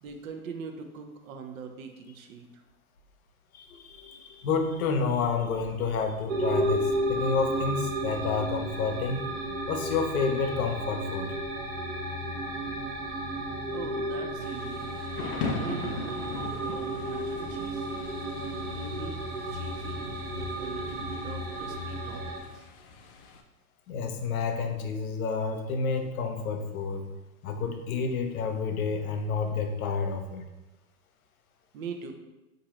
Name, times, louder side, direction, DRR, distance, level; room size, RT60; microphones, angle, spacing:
voice 1, 0.0-2.6 13.7-14.8 15.4-17.9 18.7-19.3 19.5-22.7 31.7-32.1, right 5 dB, 65° right, 5 dB, 0.7 m, -42 dB
voice 2, 3.5-9.2 9.7-11.3 23.9-27.0 27.4-30.4, left 5 dB, 70° left, 5 dB, 0.7 m, -29 dB
sound 1, 6.3-22.4, right 1 dB, 20° right, 0.4 m, -33 dB
Thunder / Rain, 14.4-23.4, left 4 dB, 40° left, 0.4 m, -40 dB
3.9 x 2.7 x 2.9 m, 1.0 s
hypercardioid pair, 105°, 44 cm